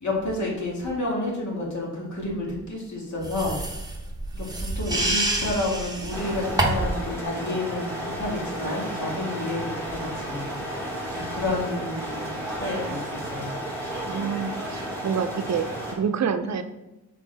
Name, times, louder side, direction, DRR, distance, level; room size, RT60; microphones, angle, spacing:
voice 1, 0.0-3.6 4.3-10.5 11.1-13.6, left 2 dB, 65° left, -3 dB, 2.2 m, -30 dB
sound 1, 3.2-7.0, right 2 dB, 15° right, 0.9 m, -27 dB
sound 2, 6.1-15.9, right 1 dB, 10° left, 2.1 m, -33 dB
voice 2, 14.1-16.6, right 6 dB, 60° right, 8 dB, 0.5 m, -27 dB
6.4 x 4.6 x 4.1 m, 1.0 s
wide cardioid pair, 110°, 30 cm